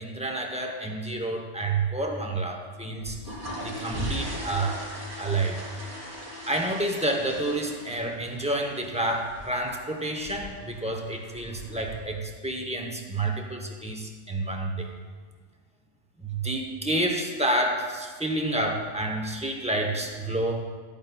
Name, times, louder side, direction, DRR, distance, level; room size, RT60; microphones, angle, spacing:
voice 1, 0.0-3.2 3.6-4.9 5.2-5.6 6.5-14.9 16.2-20.6, right 2 dB, 10° right, 2 dB, 0.5 m, -29 dB
sound 1, 2.9-12.0, equal, 75° right, 3.1 m, -39 dB
12.0 x 8.8 x 2.2 m, 1.5 s
omnidirectional pair, 1.3 m